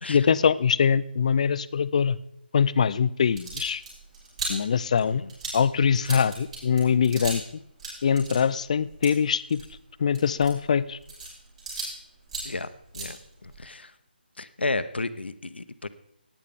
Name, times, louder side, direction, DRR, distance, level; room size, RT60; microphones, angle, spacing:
voice 1, 0.1-2.2 2.5-3.8 4.5-5.2 5.5-7.4 8.0-9.6 10.0-11.0, left 7 dB, 40° left, 16 dB, 0.4 m, -23 dB
sound 1, 3.2-7.5 7.8-12.0 12.2-13.7, right 3 dB, 40° right, 6.1 m, -37 dB
voice 2, 12.4-13.9 14.4-15.9, left 3 dB, 85° left, 12 dB, 0.8 m, -33 dB
16.0 x 9.8 x 3.6 m, 0.73 s
figure-of-eight pair, 155°, 6 cm